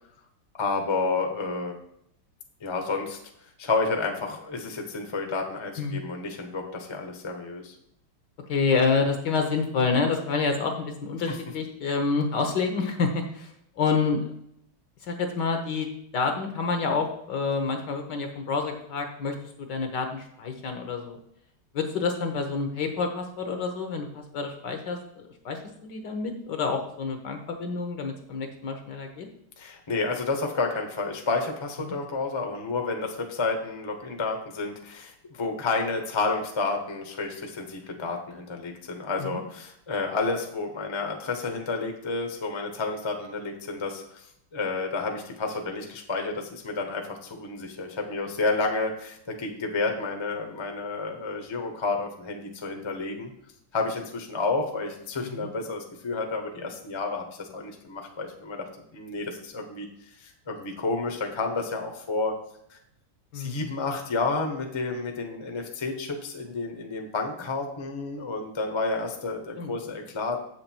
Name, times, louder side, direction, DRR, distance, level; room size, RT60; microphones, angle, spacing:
voice 1, 0.5-1.8 2.6-3.2 3.6-7.7 11.3-11.4 29.6-44.3 44.5-53.3 53.7-59.9 60.2-62.4 62.7-62.8 63.3-70.4, left 3 dB, 20° left, 3 dB, 0.8 m, -30 dB
voice 2, 8.5-14.2 15.0-15.9 16.1-21.2 21.7-29.3 39.2-39.3 55.4-55.5 63.3-63.7 69.5-69.7, left 4 dB, 60° left, 5 dB, 1.5 m, -28 dB
7.9 x 6.7 x 4.5 m, 0.74 s
omnidirectional pair, 2.4 m